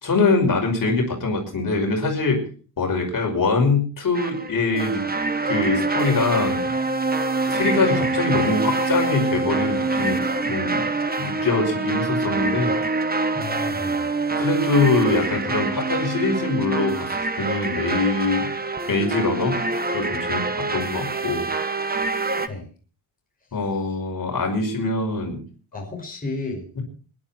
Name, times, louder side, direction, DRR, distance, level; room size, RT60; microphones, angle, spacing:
voice 1, 0.0-2.5 2.8-5.0 5.4-6.7 7.5-10.2 10.5-10.9 11.2-12.7 14.3-18.5 18.9-21.5 23.5-25.4, left 3 dB, 50° left, 2 dB, 5.7 m, -23 dB
sound 1, 4.2-22.5, right 3 dB, 20° right, 1.3 m, -25 dB
voice 2, 13.3-14.1 22.5-22.7 23.7-23.9 25.7-26.7, left 3 dB, 20° left, -1 dB, 5.8 m, -33 dB
26.0 x 11.5 x 4.4 m, 0.39 s
wide cardioid pair, 165°, 41 cm